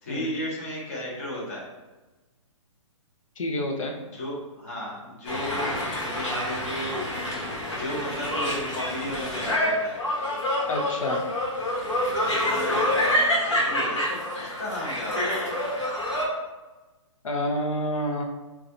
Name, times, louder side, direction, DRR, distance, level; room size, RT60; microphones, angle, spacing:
voice 1, 0.0-1.7 4.1-7.2 7.7-10.0 12.2-15.8, equal, 30° left, -4 dB, 0.7 m, -34 dB
voice 2, 3.4-3.9 10.7-11.2 17.2-18.2, left 1 dB, 85° left, 2 dB, 0.6 m, -28 dB
sound 1, 5.3-16.3, left 1 dB, 60° left, 1.2 m, -27 dB
3.9 x 2.3 x 2.6 m, 1.1 s
hypercardioid pair, 180°, 17 cm